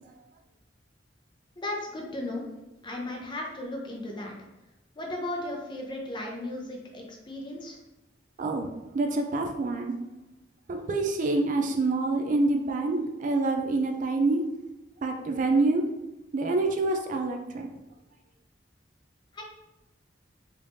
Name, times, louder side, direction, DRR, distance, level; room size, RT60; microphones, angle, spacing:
voice 1, 1.6-2.4 2.8-4.3 5.0-7.8 19.3-19.4, left 1 dB, 25° left, 0 dB, 0.6 m, -35 dB
voice 2, 8.9-10.0 10.7-14.4 15.0-15.9 16.3-17.7, right 2 dB, 45° right, 4 dB, 0.4 m, -26 dB
3.4 x 3.1 x 2.6 m, 0.95 s
head